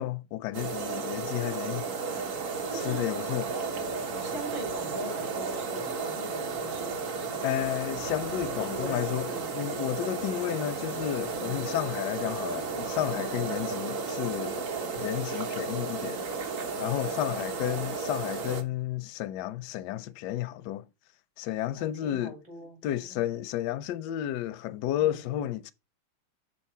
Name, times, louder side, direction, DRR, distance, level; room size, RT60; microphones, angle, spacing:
voice 1, 0.0-1.8 2.7-3.5 7.4-14.7 15.0-16.2 16.8-20.8 21.4-22.4 22.8-25.7, left 13 dB, 75° left, 1.0 m, -32 dB
sound 1, 0.5-18.6, right 4 dB, 50° right, 1.1 m, -33 dB
voice 2, 2.7-3.4 4.2-7.5 8.4-9.5 11.4-11.7 13.1-13.5 17.3-17.7 21.7-23.3 24.9-25.2, right 1 dB, 70° right, 4.1 m, -43 dB
6.5 x 4.3 x 4.3 m
omnidirectional pair, 2.1 m